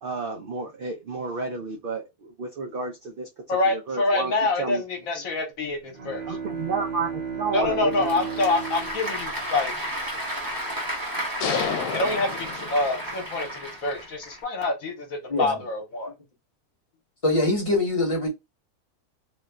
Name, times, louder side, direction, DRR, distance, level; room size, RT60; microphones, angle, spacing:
voice 1, 0.0-4.3 4.6-4.8 6.0-8.6, right 4 dB, 80° right, 0.5 m, -32 dB
voice 2, 3.5-6.4 7.5-9.7 11.9-16.1, left 3 dB, 65° left, 1.2 m, -26 dB
Bowed string instrument, 5.8-10.4, right 6 dB, 55° right, 0.8 m, -34 dB
Applause / Crowd, 7.6-14.4, equal, 20° right, 0.8 m, -33 dB
sound 1, 11.4-13.2, left 6 dB, 85° left, 1.1 m, -30 dB
voice 3, 17.2-18.3, left 2 dB, 25° left, 0.9 m, -23 dB
3.0 x 2.2 x 2.2 m
omnidirectional pair, 1.6 m